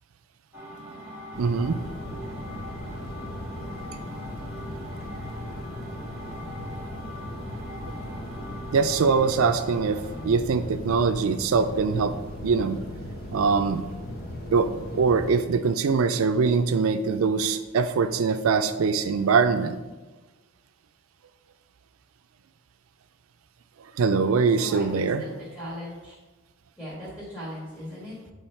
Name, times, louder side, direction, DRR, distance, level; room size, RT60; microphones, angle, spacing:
sound 1, 0.5-10.3, equal, 5° right, 1.5 m, -42 dB
sound 2, 1.3-15.3, left 1 dB, 50° left, 0.8 m, -37 dB
voice 1, 1.4-1.8 8.7-12.2 12.4-12.8 13.3-13.8 14.5-19.8 24.0-25.2, right 5 dB, 90° right, 10 dB, 0.4 m, -23 dB
voice 2, 24.6-26.2 26.8-28.3, equal, 10° left, -9 dB, 1.7 m, -39 dB
8.6 x 3.1 x 4.4 m, 1.2 s
head